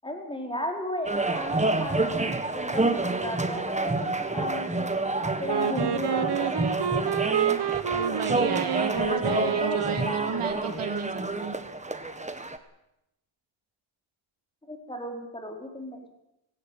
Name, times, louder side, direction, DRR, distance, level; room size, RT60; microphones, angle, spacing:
voice 1, 0.0-4.9 5.4-6.6 9.0-9.8 10.0-10.7 14.7-16.0, left 1 dB, 10° left, 2 dB, 4.4 m, -35 dB
sound 1, 1.0-12.6, right 2 dB, 15° right, 1.6 m, -28 dB
Wind instrument woodwind instrument, 5.5-10.5, right 9 dB, 55° right, 1.3 m, -28 dB
voice 2, 7.9-11.1 11.4-11.6, right 8 dB, 80° right, 5 dB, 3.3 m, -33 dB
18.0 x 17.0 x 9.2 m, 0.87 s
cardioid pair, 110°, 49 cm